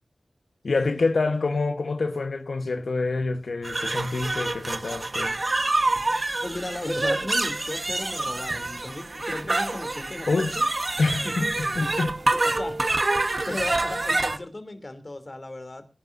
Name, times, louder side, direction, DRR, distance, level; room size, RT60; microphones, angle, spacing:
voice 1, 0.6-5.4 10.3-10.6 11.0-12.1, left 3 dB, 75° left, 1.2 m, -26 dB
sound 1, 3.6-14.4, right 2 dB, 40° right, 1.3 m, -27 dB
voice 2, 6.0-10.6 11.1-11.5 11.8-11.9 12.3-12.8 13.5-15.9, left 2 dB, 35° left, 3.1 m, -36 dB
23.0 x 11.0 x 2.7 m
wide cardioid pair, 70°, 0 cm